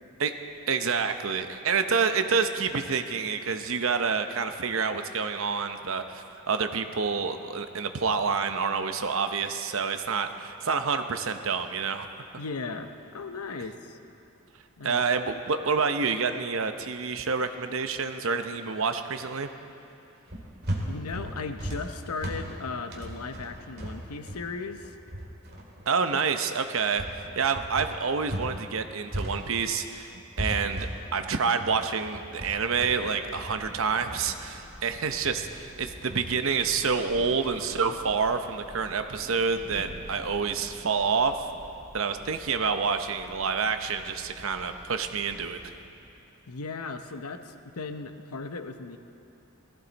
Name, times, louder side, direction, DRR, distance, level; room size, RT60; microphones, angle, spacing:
voice 1, 0.7-12.1 14.8-19.5 25.9-30.1 30.4-41.5 41.9-45.6, right 5 dB, 65° right, 8 dB, 0.8 m, -28 dB
voice 2, 12.4-14.0 14.8-15.0 20.9-24.9 46.5-49.0, left 4 dB, 90° left, 8 dB, 0.8 m, -37 dB
sound 1, 20.3-28.6 28.8-37.6, right 1 dB, 45° right, 2.2 m, -37 dB
Thunder / Rain, 32.4-46.4, equal, 15° right, 2.0 m, -49 dB
19.0 x 14.5 x 4.1 m, 2.8 s
head